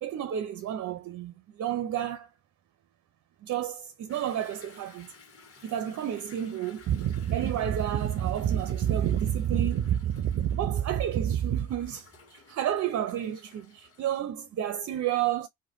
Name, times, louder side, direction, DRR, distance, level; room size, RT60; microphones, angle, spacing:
voice 1, 0.0-2.3 3.4-5.1 5.6-12.1 12.3-15.5, right 10 dB, 40° right, 0.6 m, -29 dB
Toilet flush / Drip / Trickle dribble, 4.1-14.2, left 4 dB, 35° left, 1.4 m, -55 dB
3.1 x 2.2 x 2.9 m
hypercardioid pair, 70°, 42 cm